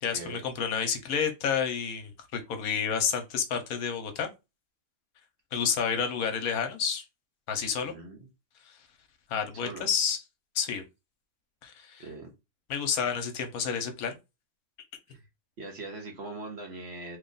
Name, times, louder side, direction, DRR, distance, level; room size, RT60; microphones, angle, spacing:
voice 1, 0.0-4.3 5.5-7.0 7.5-7.9 9.3-10.2 10.5-10.8 11.6-12.0 12.7-14.2, left 7 dB, 75° left, 1.2 m, -30 dB
voice 2, 7.8-8.3 9.6-9.9 12.0-12.3 15.1-15.2 15.6-17.2, right 2 dB, 50° right, 1.0 m, -41 dB
3.2 x 2.4 x 3.8 m
omnidirectional pair, 1.6 m